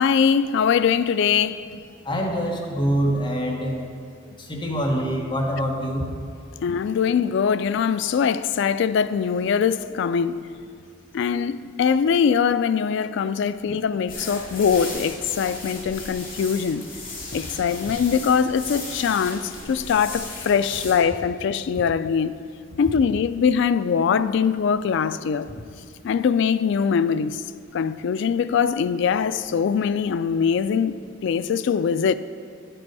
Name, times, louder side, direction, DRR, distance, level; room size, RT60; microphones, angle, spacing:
voice 1, 0.0-1.8 6.6-10.4 11.1-16.9 17.3-22.3 22.8-25.5 26.0-27.4 27.7-32.1, left 6 dB, 65° left, 0.3 m, -22 dB
voice 2, 2.0-3.8 4.4-6.1, equal, 25° left, 1.3 m, -25 dB
sound 1, 14.1-20.9, left 2 dB, 50° left, 2.4 m, -36 dB
10.5 x 7.8 x 4.7 m
head